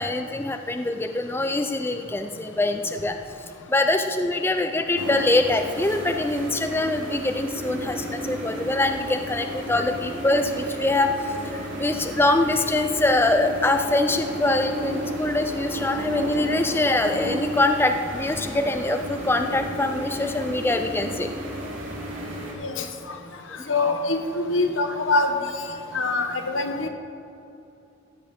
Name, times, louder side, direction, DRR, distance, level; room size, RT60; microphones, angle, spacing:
voice 1, 0.0-11.1 11.8-21.3, left 2 dB, 10° left, 6 dB, 0.4 m, -24 dB
sound 1, 5.0-22.5, right 1 dB, 85° right, 2.8 m, -33 dB
voice 2, 23.7-25.3 25.9-26.9, left 3 dB, 80° left, 5 dB, 1.3 m, -24 dB
16.5 x 5.5 x 8.0 m, 2.8 s
head